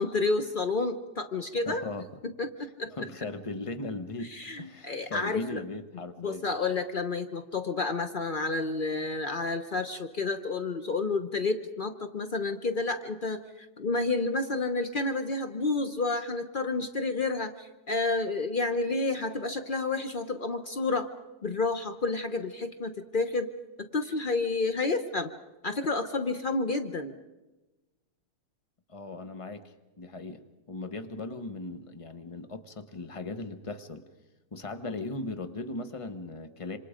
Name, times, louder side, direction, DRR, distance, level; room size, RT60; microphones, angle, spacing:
voice 1, 0.0-1.8 2.2-2.9 4.2-5.6 6.2-21.1 21.4-23.5 23.8-25.3 25.6-27.1, left 3 dB, 80° left, 8 dB, 0.4 m, -30 dB
voice 2, 1.7-2.1 2.9-6.4 28.9-30.4 30.7-34.0 34.5-36.8, left 2 dB, 30° left, 8 dB, 0.6 m, -38 dB
27.0 x 26.5 x 5.1 m, 1.1 s
omnidirectional pair, 2.4 m